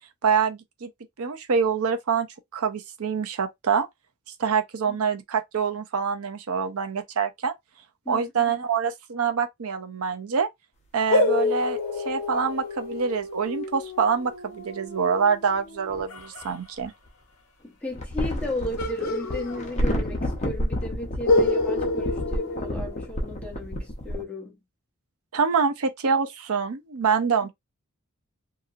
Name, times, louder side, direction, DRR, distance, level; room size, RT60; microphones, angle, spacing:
voice 1, 0.2-0.9 1.2-2.3 2.5-3.9 4.4-7.5 8.1-10.5 10.9-16.9 25.3-27.5, right 6 dB, 75° right, 0.6 m, -25 dB
voice 2, 8.0-8.6 17.6-24.6, left 1 dB, 5° left, 1.0 m, -34 dB
sound 1, 11.1-16.5 18.8-20.2 20.5-20.6 21.2-23.4, left 3 dB, 65° left, 0.9 m, -28 dB
sound 2, 13.6-13.7 15.9-17.1 17.9-24.2, equal, 30° left, 0.9 m, -30 dB
2.9 x 2.7 x 2.5 m
head